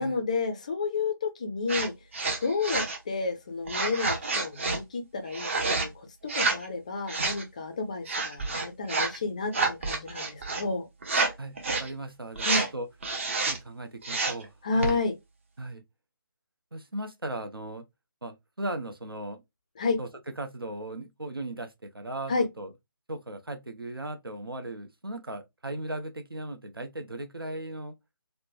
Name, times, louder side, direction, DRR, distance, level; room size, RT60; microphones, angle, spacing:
voice 1, 0.0-1.9 2.4-5.5 5.8-6.1 6.3-10.9 12.4-12.6 14.6-15.1 19.8-20.0 22.3-22.5, left 4 dB, 20° left, 0.4 m, -30 dB
sound 1, 1.7-1.9 2.1-3.0 3.7-4.8 5.3-5.9 6.2-6.7 7.1-7.4 8.1-9.2 9.5-10.6 11.0-11.3 11.6-11.9 12.4-12.7 13.0-13.6 14.0-14.5 14.8-15.0, right 3 dB, 35° right, 0.6 m, -28 dB
voice 2, 11.4-12.9 13.5-15.0 15.6-15.8 16.7-17.9 18.2-19.4 20.0-20.1 20.4-22.7 23.1-28.0, right 1 dB, 85° right, 0.7 m, -37 dB
3.1 x 2.1 x 2.5 m
figure-of-eight pair, 155°, 12 cm